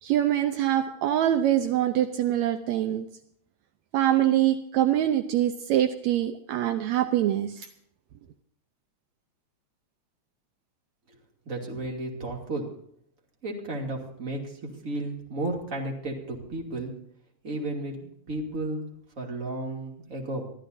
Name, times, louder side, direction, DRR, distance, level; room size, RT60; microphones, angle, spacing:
voice 1, 0.0-3.1 3.9-7.7, right 12 dB, 75° right, 8 dB, 2.0 m, -24 dB
voice 2, 11.4-12.7 13.4-16.9 17.4-18.9 19.2-20.5, right 2 dB, 30° right, 0 dB, 2.7 m, -33 dB
25.0 x 14.0 x 2.7 m, 0.68 s
omnidirectional pair, 3.3 m